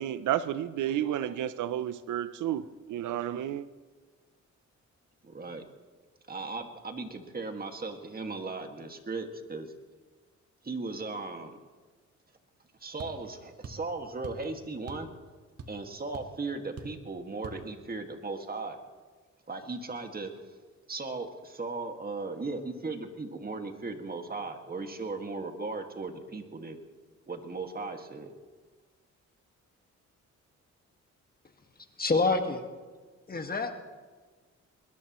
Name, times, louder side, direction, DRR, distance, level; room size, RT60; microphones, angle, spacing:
voice 1, 0.0-3.7, right 11 dB, 80° right, 0.6 m, -31 dB
voice 2, 5.2-5.6 6.3-9.7 10.6-11.6 12.8-15.1 15.7-18.8 19.5-20.3 20.9-26.8 27.3-28.3, right 3 dB, 30° right, 2.0 m, -37 dB
sound 1, 13.0-13.2 13.6-13.9 14.2-14.5 14.9-15.1 15.4-15.9 16.1-16.3 16.8-17.0 17.4-17.6, right 4 dB, 55° right, 1.8 m, -43 dB
voice 3, 32.0-32.7 33.3-33.7, left 3 dB, 30° left, 1.8 m, -27 dB
21.5 x 21.0 x 3.1 m
cardioid pair, 90°, 30 cm